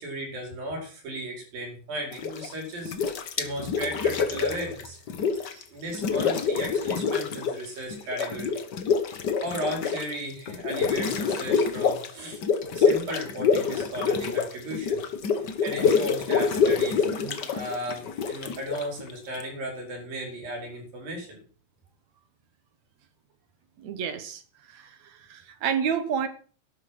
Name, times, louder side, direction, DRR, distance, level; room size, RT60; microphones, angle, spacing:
voice 1, 0.0-5.0 5.7-8.6 9.4-12.4 12.7-15.0 15.6-17.1 17.5-21.4, right 1 dB, 75° right, 1 dB, 6.6 m, -35 dB
sound 1, 2.1-2.5 2.8-5.6 5.9-7.6 7.9-19.4, left 5 dB, 75° left, 0.9 m, -26 dB
voice 2, 17.1-17.6 23.8-24.4 24.7-26.3, right 7 dB, 60° right, 10 dB, 2.4 m, -31 dB
11.5 x 11.5 x 6.1 m, 0.42 s
omnidirectional pair, 4.0 m